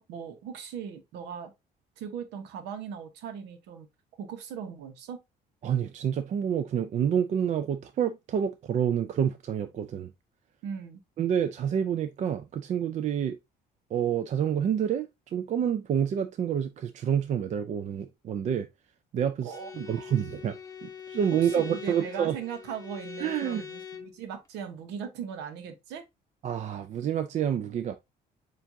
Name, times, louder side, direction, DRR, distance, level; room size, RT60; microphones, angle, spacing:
voice 1, 0.0-1.5 2.0-3.9 4.2-5.2 10.6-11.0 19.4-20.1 21.4-26.0, right 7 dB, 90° right, 0.9 m, -39 dB
voice 2, 5.6-10.1 11.2-13.4 13.9-18.7 19.1-22.4 23.2-23.6 26.4-27.9, right 8 dB, 45° right, 0.4 m, -28 dB
Bowed string instrument, 19.5-24.2, left 7 dB, 20° left, 0.7 m, -42 dB
7.1 x 2.5 x 2.6 m
cardioid pair, 110°, 17 cm